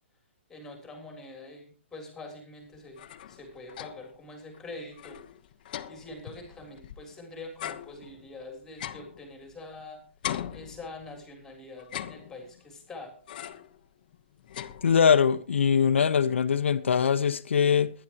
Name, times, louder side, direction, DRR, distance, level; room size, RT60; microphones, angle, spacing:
voice 1, 0.5-5.2 5.9-10.0 10.5-13.1, left 2 dB, 5° left, 3.7 m, -44 dB
sound 1, 2.7-4.2 4.5-4.6 4.9-7.1 7.6-9.8 10.2-11.3 11.8-12.7 13.3-13.8 14.1-15.3, left 11 dB, 45° left, 1.1 m, -40 dB
voice 2, 14.8-17.9, left 7 dB, 80° left, 1.1 m, -22 dB
22.5 x 10.5 x 3.0 m
hypercardioid pair, 155°, 6 cm